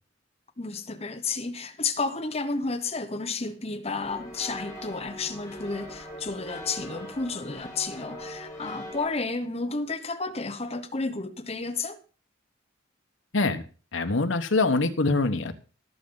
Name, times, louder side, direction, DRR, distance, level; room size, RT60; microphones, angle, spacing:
voice 1, 0.6-12.0, left 3 dB, 35° left, 1.0 m, -32 dB
sound 1, 4.0-9.1, equal, 15° left, 4.5 m, -41 dB
voice 2, 13.9-15.5, left 3 dB, 90° left, 1.2 m, -24 dB
17.5 x 7.6 x 3.9 m
head